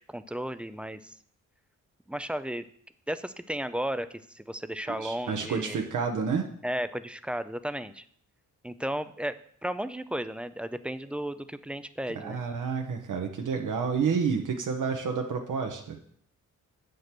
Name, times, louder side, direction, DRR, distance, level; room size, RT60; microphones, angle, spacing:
voice 1, 0.1-1.1 2.1-2.6 3.1-4.1 4.3-5.8 6.6-8.1 8.6-9.3 9.6-12.4, right 1 dB, 5° right, 12 dB, 0.4 m, -34 dB
voice 2, 4.9-6.5 12.2-16.0, right 5 dB, 80° right, 3 dB, 1.1 m, -29 dB
8.2 x 5.2 x 6.0 m, 0.62 s
cardioid pair, 115°, 31 cm